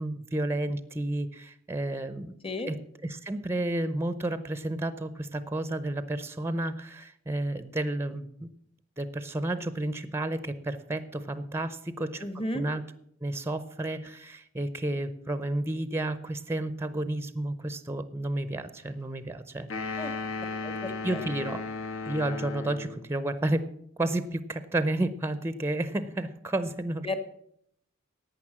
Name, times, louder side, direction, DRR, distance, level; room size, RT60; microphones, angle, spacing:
voice 1, 0.0-2.3 2.7-8.5 9.0-12.8 13.2-20.1 21.0-21.7 22.0-23.7 24.0-27.2, right 1 dB, 10° right, 13 dB, 0.6 m, -31 dB
voice 2, 12.2-12.6 20.0-20.1 20.6-21.2 27.0-27.2, left 1 dB, 25° left, 9 dB, 1.3 m, -33 dB
sound 1, 19.7-23.1, left 3 dB, 70° left, 1.6 m, -35 dB
11.0 x 9.1 x 7.3 m, 0.71 s
head